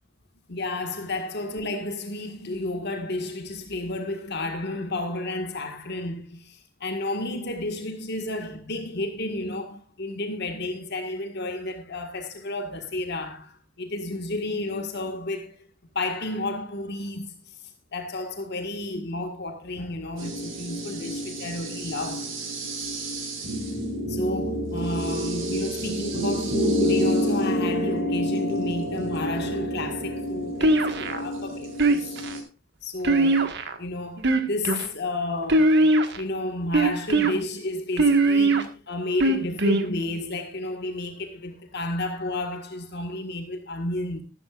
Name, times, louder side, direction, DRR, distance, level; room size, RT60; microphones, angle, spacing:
voice 1, 0.5-15.6 16.0-22.4 24.1-32.1 32.8-33.5 33.8-44.2, left 2 dB, 55° left, 1.7 m, -31 dB
sound 1, 20.2-32.4, equal, 75° right, 4.7 m, -29 dB
sound 2, 30.6-31.2 31.8-32.3 33.0-33.8 34.2-34.9 35.5-36.2 36.7-37.3 38.0-38.6 39.2-39.8, right 2 dB, 60° right, 1.7 m, -20 dB
14.5 x 13.0 x 2.5 m
head